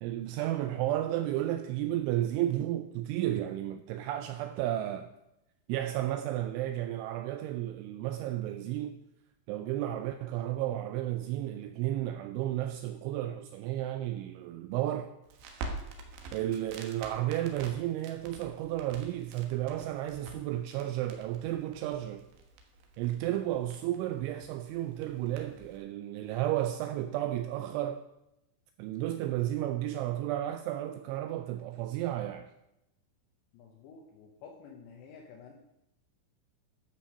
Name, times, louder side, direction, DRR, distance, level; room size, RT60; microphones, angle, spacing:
voice 1, 0.0-5.1 5.7-9.0 9.5-15.1 16.3-22.3 23.0-28.0 28.8-32.5, right 13 dB, 85° right, 2.7 m, -33 dB
Crackle, 15.2-25.8, right 3 dB, 70° right, 3.1 m, -47 dB
voice 2, 33.5-35.5, left 5 dB, 70° left, 2.9 m, -51 dB
12.0 x 7.0 x 6.3 m
omnidirectional pair, 5.9 m